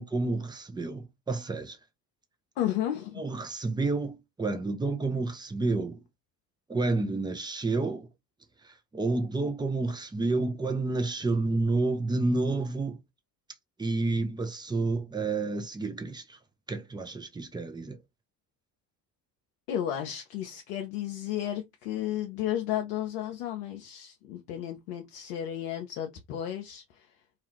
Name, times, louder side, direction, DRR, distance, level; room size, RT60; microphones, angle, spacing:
voice 1, 0.0-1.8 3.2-6.0 6.7-8.1 8.6-13.0 13.8-16.4 16.7-18.0, right 3 dB, 10° right, 0.5 m, -30 dB
voice 2, 2.6-3.2 19.7-27.1, left 11 dB, 75° left, 0.6 m, -33 dB
2.4 x 2.3 x 2.9 m
figure-of-eight pair, 40°, 48 cm